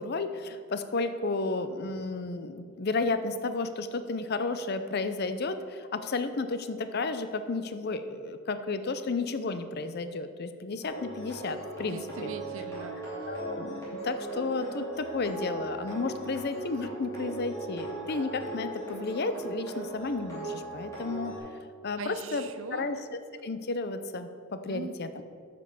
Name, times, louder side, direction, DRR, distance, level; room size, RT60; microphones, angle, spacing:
voice 1, 0.0-12.3 13.3-21.3 21.8-23.0 23.4-25.1, left 3 dB, 45° left, 10 dB, 0.5 m, -32 dB
sound 1, 10.8-21.4, right 2 dB, 15° left, 2.7 m, -38 dB
voice 2, 11.8-12.9 13.2-13.3 22.0-23.0 24.6-25.2, right 4 dB, 65° right, 9 dB, 0.6 m, -41 dB
9.7 x 5.3 x 6.7 m, 2.2 s
head